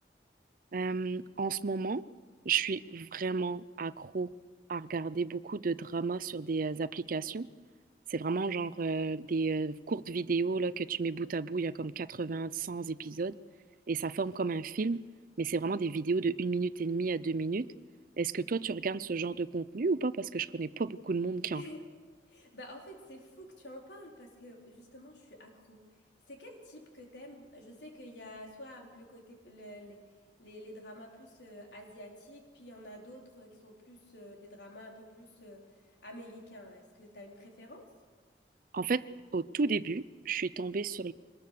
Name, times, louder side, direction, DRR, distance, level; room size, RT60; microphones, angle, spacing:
voice 1, 0.7-2.0 2.5-4.3 4.7-7.5 8.1-13.4 13.9-15.0 15.4-17.7 18.2-21.6 38.7-39.0 39.3-41.1, right 4 dB, 50° right, 17 dB, 0.6 m, -32 dB
voice 2, 21.5-21.8 22.3-25.8 26.3-30.0 30.4-37.9, left 1 dB, 80° left, 0 dB, 4.5 m, -49 dB
24.0 x 19.5 x 6.9 m, 1.4 s
head